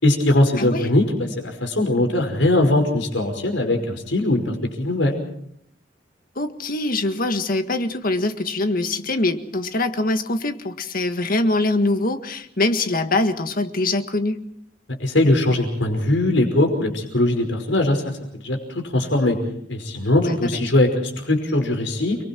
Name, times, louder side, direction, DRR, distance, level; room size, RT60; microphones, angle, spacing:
voice 1, 0.0-5.2 15.0-18.1 18.4-18.6 18.9-19.4 19.7-22.2, left 1 dB, 85° left, 4 dB, 5.4 m, -20 dB
voice 2, 0.6-0.9 6.4-14.4 20.2-20.6, left 2 dB, 50° left, 8 dB, 1.8 m, -23 dB
30.0 x 22.5 x 4.6 m, 0.71 s
head